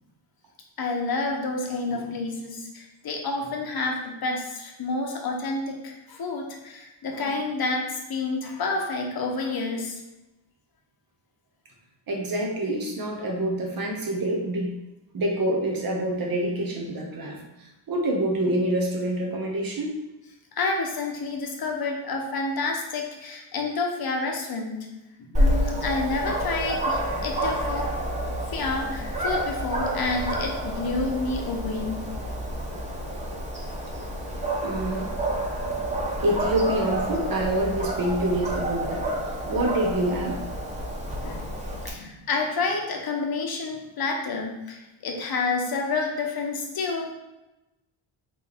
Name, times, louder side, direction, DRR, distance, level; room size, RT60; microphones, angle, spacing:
voice 1, 0.8-10.0 20.6-24.9 25.2-27.9 28.5-32.0 38.0-38.1 41.2-41.5 41.8-47.1, left 3 dB, 50° left, 1 dB, 0.9 m, -29 dB
voice 2, 12.1-14.7 15.1-20.0 34.6-35.1 36.2-39.1 39.4-40.4, right 1 dB, 45° right, 0 dB, 1.0 m, -26 dB
Dog, 25.3-41.9, right 1 dB, 15° right, 0.9 m, -29 dB
4.2 x 3.2 x 3.6 m, 0.97 s
cardioid pair, 110°, 48 cm